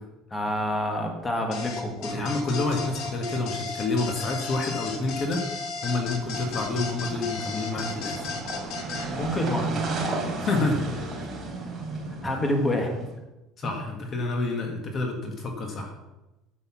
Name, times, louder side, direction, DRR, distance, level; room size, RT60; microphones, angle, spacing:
voice 1, 0.3-2.2 9.1-9.8 12.2-13.1, left 1 dB, 15° left, 2 dB, 1.6 m, -27 dB
sound 1, 1.5-9.1, left 4 dB, 55° left, 2.1 m, -34 dB
voice 2, 2.1-8.3 10.4-10.8 13.6-16.0, left 3 dB, 30° left, 3 dB, 1.5 m, -28 dB
sound 2, 6.0-13.0, right 3 dB, 25° right, 3.4 m, -33 dB
10.0 x 6.9 x 7.0 m, 1.0 s
cardioid pair, 165°, 0 cm